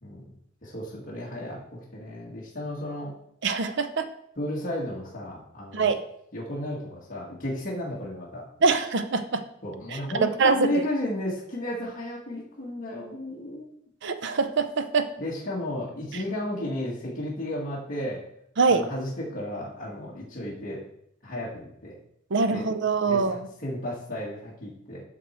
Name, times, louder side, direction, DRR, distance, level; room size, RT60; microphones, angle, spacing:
voice 1, 0.6-3.1 4.4-5.9 6.3-8.4 9.6-13.6 15.2-18.2 18.7-20.8 21.2-22.0 22.5-22.7 23.0-25.0, left 1 dB, 40° left, -6 dB, 1.6 m, -33 dB
voice 2, 3.4-4.1 5.7-6.0 8.6-9.4 10.2-10.7 14.0-15.1 18.6-18.8 22.3-23.4, right 4 dB, 60° right, 10 dB, 0.6 m, -23 dB
7.2 x 5.9 x 4.3 m, 0.74 s
head